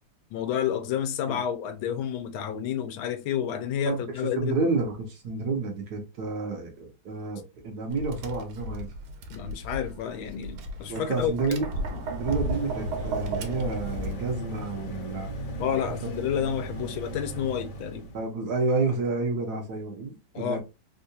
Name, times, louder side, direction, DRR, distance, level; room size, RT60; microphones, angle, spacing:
voice 1, 0.3-4.6 9.3-12.0 15.6-18.1 20.3-20.6, left 9 dB, 85° left, 1.4 m, -30 dB
voice 2, 4.4-8.9 10.9-11.7 12.1-15.3 15.7-15.8 16.8-16.9 18.1-20.6, right 3 dB, 60° right, 1.2 m, -30 dB
Tap, 7.9-14.1, right 1 dB, 85° right, 1.4 m, -34 dB
sound 1, 11.7-18.3, right 1 dB, 65° left, 1.3 m, -37 dB
3.6 x 2.4 x 2.7 m
omnidirectional pair, 2.2 m